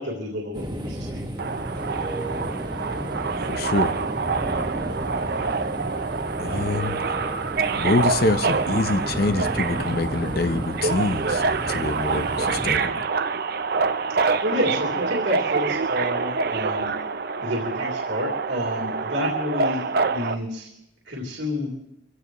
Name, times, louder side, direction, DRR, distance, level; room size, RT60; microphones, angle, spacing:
voice 1, 0.0-1.5 6.4-6.7 14.2-16.9 17.4-20.7 21.1-21.7, left 1 dB, 70° right, -3 dB, 3.1 m, -29 dB
sound 1, 0.5-12.8, right 1 dB, 25° right, 1.6 m, -32 dB
Subway metro underground, 1.4-20.3, right 4 dB, 50° right, 0.6 m, -26 dB
voice 2, 3.5-3.9 6.4-7.0 7.7-13.1, left 2 dB, 50° left, 9 dB, 0.7 m, -25 dB
25.5 x 16.0 x 3.1 m, 0.84 s
head